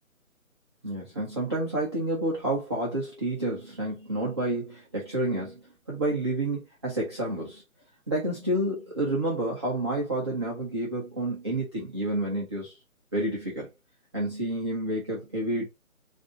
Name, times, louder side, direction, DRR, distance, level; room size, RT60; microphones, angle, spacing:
voice 1, 0.8-5.6 5.9-7.6 8.1-12.8 13.1-13.7 14.1-15.6, right 1 dB, 20° right, 0.7 m, -29 dB
5.6 x 2.6 x 2.6 m
figure-of-eight pair, 160°, 42 cm